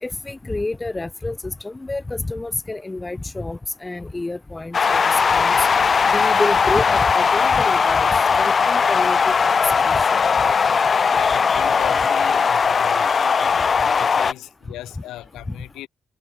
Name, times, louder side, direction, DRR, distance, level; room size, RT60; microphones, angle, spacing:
voice 1, 0.0-5.7 6.1-8.1 8.4-9.5 9.8-10.1, left 2 dB, 15° left, 0.9 m, -29 dB
sound 1, 4.7-14.3, left 5 dB, 40° left, 0.4 m, -18 dB
voice 2, 11.1-15.9, left 15 dB, 90° left, 4.9 m, -37 dB
cardioid pair, 90°, 0 cm